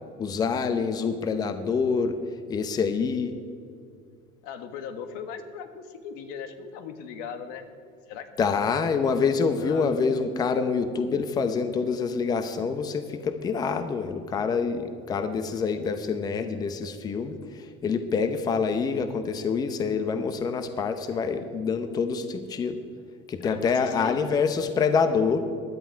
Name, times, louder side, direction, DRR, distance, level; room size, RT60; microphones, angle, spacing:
voice 1, 0.2-2.2 2.5-3.3 8.4-22.8 23.3-25.4, left 5 dB, 25° left, 9 dB, 0.8 m, -26 dB
voice 2, 4.4-7.7 8.1-8.6 9.6-9.9 21.0-21.4 23.4-24.3, left 6 dB, 75° left, 8 dB, 1.4 m, -38 dB
16.5 x 11.0 x 4.6 m, 2.3 s
cardioid pair, 140°, 15 cm